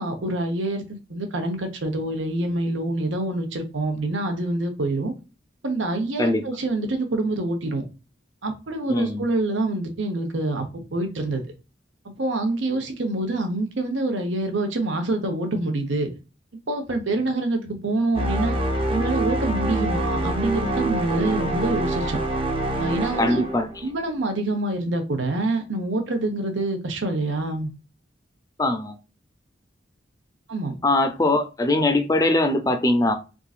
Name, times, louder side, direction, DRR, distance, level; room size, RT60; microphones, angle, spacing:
voice 1, 0.0-5.1 5.6-7.8 8.4-11.4 12.2-16.1 16.7-18.6 18.9-22.2 22.8-23.4 23.8-27.7 30.5-30.7, right 2 dB, 90° right, 0.9 m, -26 dB
voice 2, 8.9-9.2 23.2-23.7 28.6-29.0 30.8-33.1, left 2 dB, 20° left, 0.5 m, -21 dB
sound 1, 18.1-24.0, right 1 dB, 30° right, 0.6 m, -25 dB
3.6 x 2.6 x 2.4 m
head